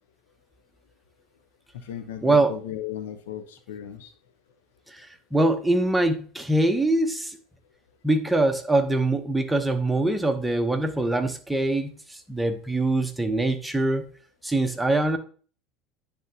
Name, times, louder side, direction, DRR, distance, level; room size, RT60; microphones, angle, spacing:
voice 1, 1.7-4.1, left 10 dB, 75° left, 8 dB, 0.8 m, -36 dB
voice 2, 5.3-7.4 8.0-14.1 14.4-15.2, right 2 dB, 10° right, 6 dB, 1.0 m, -23 dB
10.5 x 3.6 x 2.8 m, 0.41 s
hypercardioid pair, 80°, 0 cm